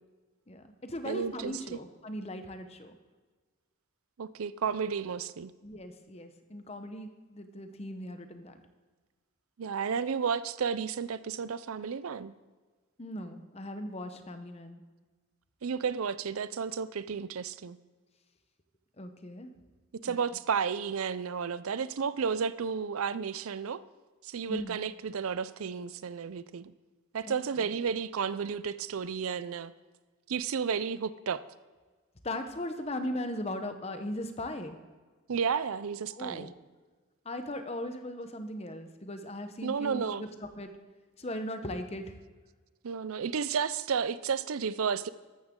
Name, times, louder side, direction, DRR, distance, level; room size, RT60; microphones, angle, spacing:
voice 1, 0.5-3.0 5.6-8.6 13.0-14.8 19.0-19.5 20.0-20.2 24.5-24.7 27.3-27.7 32.2-34.8 36.1-36.5 37.2-40.7 41.2-42.1, left 1 dB, 30° left, 8 dB, 0.9 m, -38 dB
voice 2, 1.0-1.8 4.2-5.5 9.6-12.3 15.6-17.8 19.9-23.8 24.2-26.7 27.1-29.7 30.3-31.4 35.3-36.5 39.6-40.2 42.8-45.1, right 6 dB, 75° right, 16 dB, 0.5 m, -32 dB
13.5 x 12.0 x 3.7 m, 1.3 s
head